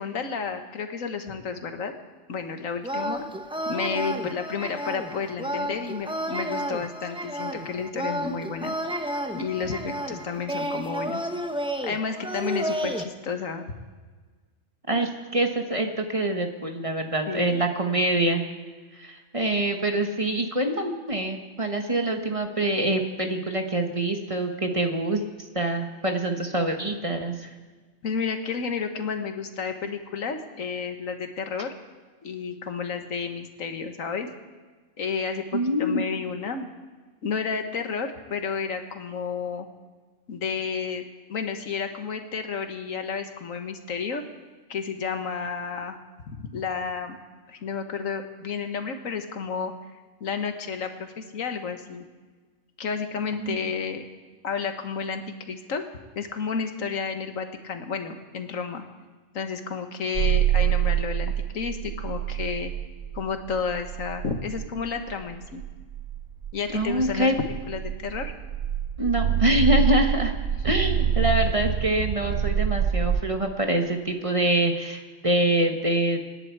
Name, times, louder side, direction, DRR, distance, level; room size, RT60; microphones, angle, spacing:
voice 1, 0.0-1.9 2.3-3.3 3.7-8.7 9.3-11.2 11.8-13.6 17.3-17.6 28.0-31.7 32.2-34.3 35.0-36.7 37.2-39.7 40.3-44.2 44.7-46.0 46.3-47.2 47.5-49.7 50.2-52.0 52.8-54.0 54.4-55.2 55.5-55.9 56.2-58.8 59.3-62.7 63.1-65.6 66.5-68.3, left 5 dB, 80° left, 6 dB, 1.6 m, -31 dB
sound 1, 2.8-13.0, equal, 5° right, 0.7 m, -31 dB
voice 2, 14.9-18.4 19.0-25.2 25.5-27.5 35.5-36.0 53.4-53.6 66.7-67.4 69.0-70.3 70.6-76.2, right 1 dB, 25° right, 4 dB, 1.2 m, -25 dB
sound 2, 60.1-73.2, right 9 dB, 50° right, 0.5 m, -26 dB
26.0 x 10.5 x 4.6 m, 1.4 s
omnidirectional pair, 1.4 m